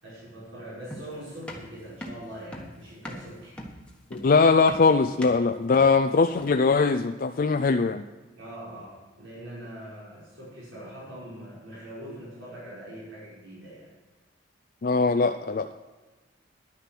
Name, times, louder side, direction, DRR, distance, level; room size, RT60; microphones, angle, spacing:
voice 1, 0.0-3.6 8.4-13.9, right 1 dB, 85° right, -7 dB, 5.4 m, -42 dB
sound 1, 0.9-6.8, equal, 5° left, 1.4 m, -41 dB
voice 2, 4.1-8.0 14.8-15.7, left 4 dB, 45° left, 7 dB, 0.4 m, -21 dB
11.5 x 10.0 x 6.0 m, 1.2 s
head